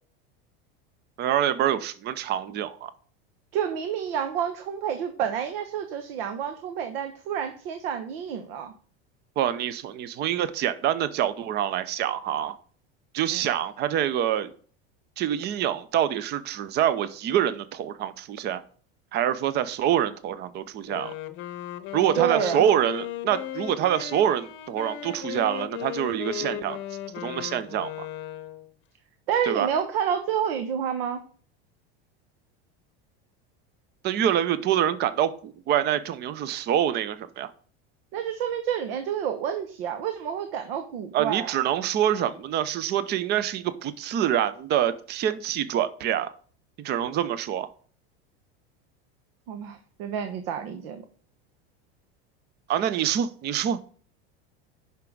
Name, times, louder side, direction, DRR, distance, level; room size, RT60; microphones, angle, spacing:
voice 1, 1.2-2.9 9.4-12.6 13.1-14.5 15.2-18.6 19.1-21.1 21.9-26.8 27.2-28.1 29.5-29.7 34.0-37.5 41.1-46.3 46.8-47.7 52.7-53.8, right 10 dB, 35° right, 0.7 m, -26 dB
voice 2, 3.5-8.7 13.3-13.4 22.2-22.6 29.3-31.2 38.1-41.5 49.5-51.0, right 8 dB, 70° right, 1.2 m, -29 dB
Wind instrument woodwind instrument, 20.7-28.7, left 12 dB, 40° left, 0.8 m, -36 dB
9.4 x 5.9 x 3.9 m
supercardioid pair, 150°, 31 cm